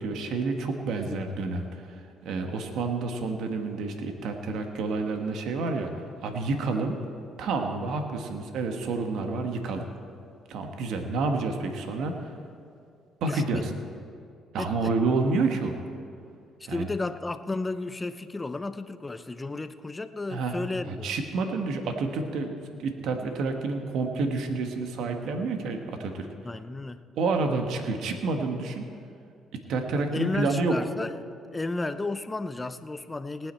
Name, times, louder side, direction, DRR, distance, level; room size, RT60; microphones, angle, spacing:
voice 1, 0.0-7.0 7.4-9.9 10.5-12.2 13.2-13.7 14.5-15.8 16.7-16.9 20.3-20.6 20.8-22.5 22.8-26.3 27.2-28.8 29.7-30.8, right 3 dB, 75° right, 5 dB, 1.3 m, -29 dB
voice 2, 13.2-13.7 14.6-14.9 16.7-21.1 26.4-27.0 29.9-31.2 31.5-33.5, left 2 dB, 20° left, 11 dB, 0.6 m, -33 dB
18.5 x 9.3 x 4.4 m, 2.4 s
supercardioid pair, 80°, 0 cm